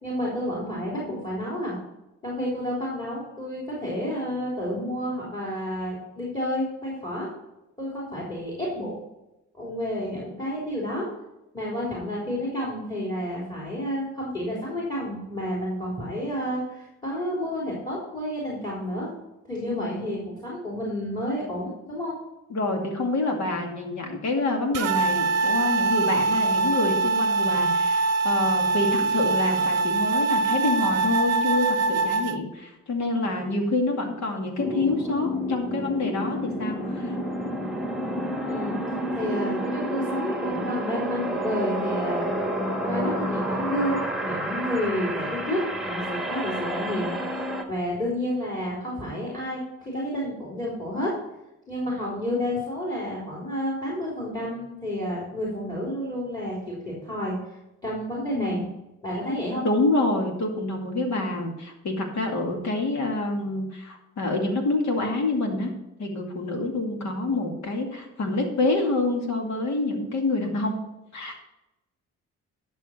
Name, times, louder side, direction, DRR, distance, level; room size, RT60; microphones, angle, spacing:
voice 1, 0.0-1.8 2.2-7.3 7.8-9.0 9.5-11.1 11.5-19.1 19.4-22.2 38.5-38.8 39.1-42.3 42.8-51.1 51.7-57.4 57.8-58.6 59.0-59.7, equal, 15° left, -5 dB, 3.5 m, -30 dB
voice 2, 19.7-20.1 22.5-37.2 58.4-58.7 59.6-65.7 66.0-70.8 71.1-71.4, left 2 dB, 65° left, 2 dB, 2.4 m, -27 dB
sound 1, 24.7-32.4, right 3 dB, 55° right, 0.7 m, -23 dB
sound 2, 34.6-47.6, equal, ahead, 1.5 m, -29 dB
11.0 x 6.2 x 4.4 m, 0.95 s
cardioid pair, 90°, 30 cm